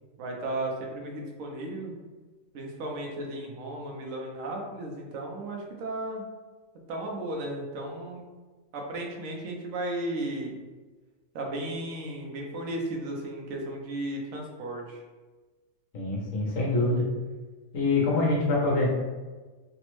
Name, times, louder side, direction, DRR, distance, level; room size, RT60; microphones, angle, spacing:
voice 1, 0.2-1.9 2.5-6.2 6.9-8.3 8.7-10.6 11.3-15.0, right 1 dB, 80° right, 0 dB, 1.0 m, -35 dB
voice 2, 15.9-17.0 17.7-18.9, left 2 dB, 85° left, -3 dB, 1.3 m, -25 dB
3.3 x 2.0 x 3.0 m, 1.3 s
omnidirectional pair, 1.4 m